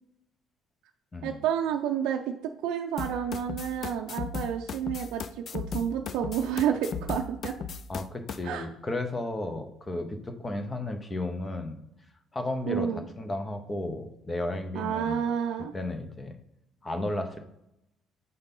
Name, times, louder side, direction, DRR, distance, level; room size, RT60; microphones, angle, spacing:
voice 1, 1.2-7.6 8.4-8.7 12.7-13.0 14.7-15.7, right 9 dB, 85° right, 3 dB, 0.5 m, -30 dB
sound 1, 3.0-8.4, left 6 dB, 45° left, 0.4 m, -36 dB
voice 2, 7.9-11.8 12.3-12.9 13.2-15.2 15.7-16.4 16.8-17.4, left 2 dB, 20° left, 7 dB, 0.9 m, -33 dB
5.5 x 4.0 x 5.3 m, 0.84 s
cardioid pair, 120°, 0 cm